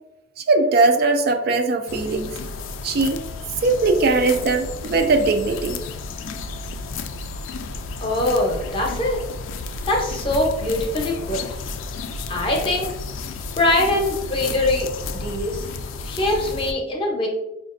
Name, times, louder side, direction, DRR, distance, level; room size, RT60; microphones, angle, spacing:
voice 1, 0.4-2.3 2.8-3.2 3.6-5.8, right 3 dB, 50° right, 6 dB, 0.3 m, -20 dB
sound 1, 1.9-16.7, left 3 dB, 80° left, 0.3 m, -32 dB
voice 2, 8.0-9.2 9.9-11.4 12.3-12.9 13.6-14.9 15.1-15.7 16.0-17.3, left 1 dB, 25° left, 0 dB, 0.7 m, -22 dB
5.1 x 2.4 x 2.5 m, 0.94 s
head